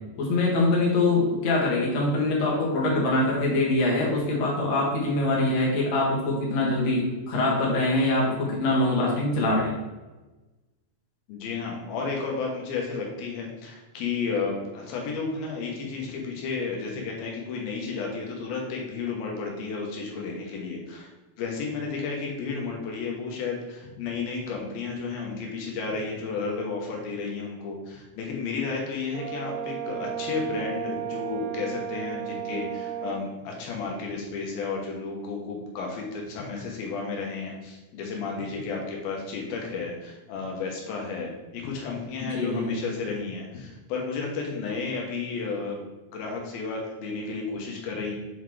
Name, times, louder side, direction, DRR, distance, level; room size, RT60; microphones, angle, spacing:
voice 1, 0.2-9.8 42.2-42.8, left 2 dB, 55° left, -3 dB, 2.7 m, -24 dB
voice 2, 11.3-21.1 21.4-48.2, left 4 dB, 85° left, -1 dB, 2.9 m, -32 dB
Brass instrument, 29.1-33.2, right 10 dB, 85° right, 1.8 m, -34 dB
7.1 x 4.1 x 4.7 m, 1.1 s
omnidirectional pair, 4.1 m